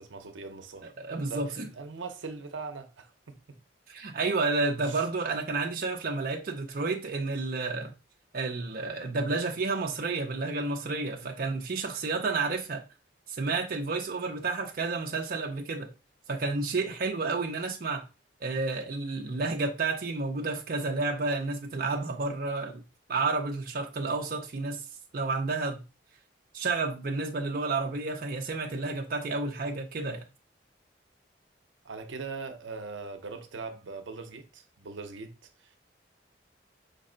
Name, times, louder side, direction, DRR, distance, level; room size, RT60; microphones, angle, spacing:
voice 1, 0.0-0.9 1.3-3.6 4.8-5.0 11.2-11.3 16.8-16.9 17.2-17.4 31.8-35.8, right 4 dB, 85° right, 0.7 m, -41 dB
voice 2, 0.8-1.7 3.9-7.9 8.3-12.8 13.3-15.9 16.3-18.1 18.4-22.8 23.1-24.9 25.1-25.8 26.5-30.2, right 3 dB, 50° right, 0.5 m, -31 dB
5.2 x 2.0 x 3.8 m
head